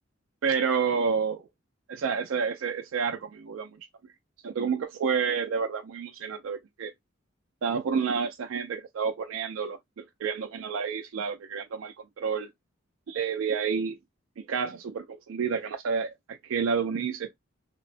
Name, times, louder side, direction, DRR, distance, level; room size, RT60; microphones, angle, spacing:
voice 1, 0.4-1.4 1.9-3.7 4.4-6.9 7.6-12.5 13.1-14.0 14.4-17.3, right 6 dB, 90° right, 0.3 m, -29 dB
2.9 x 2.0 x 2.4 m
head